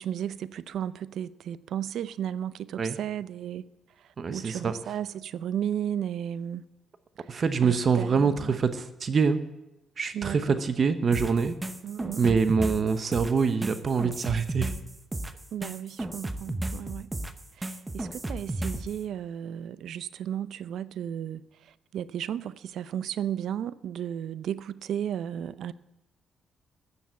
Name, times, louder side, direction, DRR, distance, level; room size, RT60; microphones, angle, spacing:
voice 1, 0.0-3.6 4.0-6.6 7.3-8.6 10.1-10.6 11.8-12.4 15.5-17.1 17.6-25.7, right 10 dB, 70° right, 0.5 m, -34 dB
voice 2, 4.2-4.7 7.3-9.4 10.0-11.5 12.2-14.7, right 5 dB, 45° right, 0.9 m, -25 dB
sound 1, 11.1-19.0, right 1 dB, 15° right, 0.9 m, -34 dB
13.5 x 7.0 x 8.2 m
cardioid pair, 90°, 0 cm